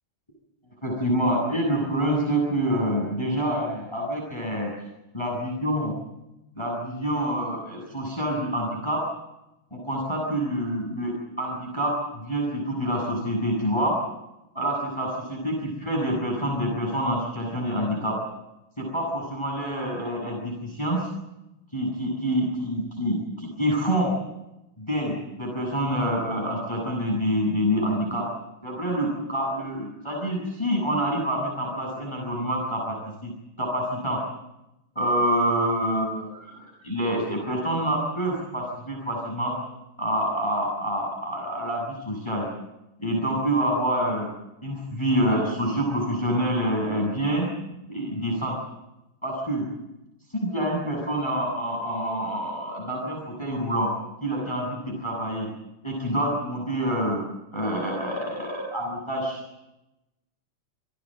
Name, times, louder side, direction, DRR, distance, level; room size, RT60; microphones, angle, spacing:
voice 1, 0.8-4.7 5.1-5.9 6.6-9.0 9.7-14.0 14.5-18.2 18.8-21.1 21.7-24.1 24.8-28.3 28.6-33.0 33.2-33.3 33.6-34.2 34.9-39.5 40.0-42.5 43.0-44.3 44.6-47.5 47.8-48.6 49.2-49.7 50.3-53.9 54.2-55.5 55.8-57.2 57.5-59.4, equal, 10° left, -1 dB, 7.5 m, -27 dB
28.0 x 19.5 x 7.9 m, 0.94 s
omnidirectional pair, 3.7 m